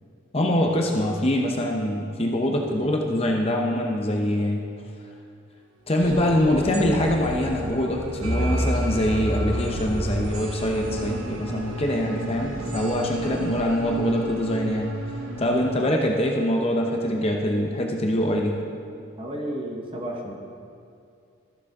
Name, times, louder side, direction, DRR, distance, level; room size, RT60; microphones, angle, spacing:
voice 1, 0.3-4.7 5.9-15.0 15.4-18.6, left 1 dB, 30° left, 1 dB, 0.7 m, -24 dB
sound 1, 6.0-15.7, equal, 90° right, 1.0 m, -30 dB
voice 2, 19.2-20.3, right 1 dB, 25° right, 0 dB, 1.0 m, -32 dB
13.5 x 7.2 x 3.5 m, 2.5 s
head